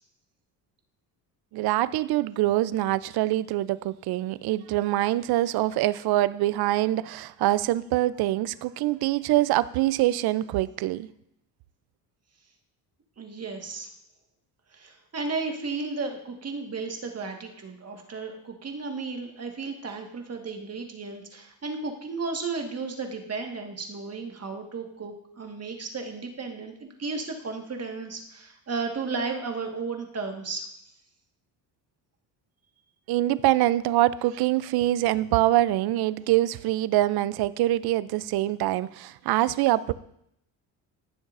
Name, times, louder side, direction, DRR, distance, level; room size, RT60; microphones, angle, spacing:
voice 1, 1.5-11.1 33.1-39.9, right 15 dB, 65° right, 18 dB, 0.5 m, -24 dB
voice 2, 13.2-13.9 14.7-30.7, right 4 dB, 35° right, 3 dB, 1.6 m, -34 dB
15.5 x 7.1 x 2.5 m, 0.75 s
supercardioid pair, 80°, 42 cm